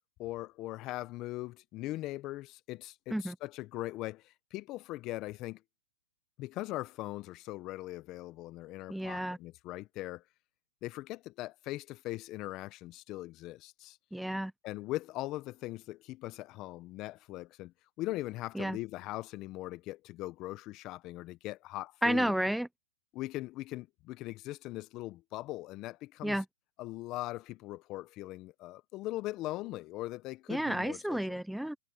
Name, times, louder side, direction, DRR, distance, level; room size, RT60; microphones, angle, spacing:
voice 1, 0.2-5.6 6.4-10.2 10.8-14.0 14.6-22.3 23.1-26.4 26.8-31.3, left 17 dB, 35° left, 1.0 m, -40 dB
voice 2, 8.9-9.4 14.1-14.5 18.6-18.8 22.0-22.7 26.2-26.4 30.5-31.8, right 1 dB, ahead, 0.8 m, -31 dB
hypercardioid pair, 125°, 0 cm